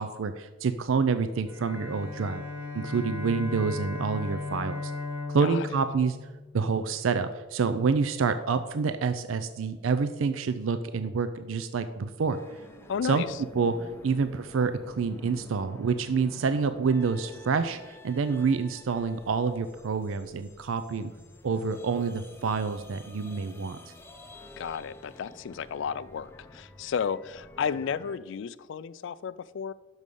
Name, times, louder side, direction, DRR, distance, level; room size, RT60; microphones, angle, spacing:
voice 1, 0.0-2.4 2.7-4.9 5.3-6.2 6.5-12.4 13.0-13.2 13.6-21.1 21.4-23.8, right 5 dB, 70° right, 10 dB, 0.4 m, -27 dB
Bowed string instrument, 1.5-6.9, left 3 dB, 10° right, 1.4 m, -37 dB
sound 1, 12.3-28.2, left 1 dB, 10° left, 0.5 m, -49 dB
voice 2, 12.9-13.4 24.6-29.7, left 7 dB, 60° left, 17 dB, 0.3 m, -33 dB
6.2 x 5.4 x 6.7 m, 1.2 s
head